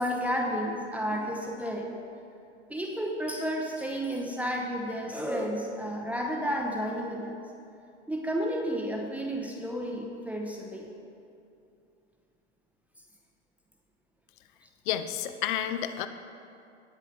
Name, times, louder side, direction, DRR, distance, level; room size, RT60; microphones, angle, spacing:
voice 1, 0.0-1.9 2.7-7.4 8.1-10.9, equal, 5° right, 0 dB, 0.7 m, -31 dB
voice 2, 14.9-16.1, left 10 dB, 45° left, 11 dB, 0.7 m, -30 dB
18.5 x 7.5 x 3.3 m, 2.6 s
figure-of-eight pair, 90°, 35 cm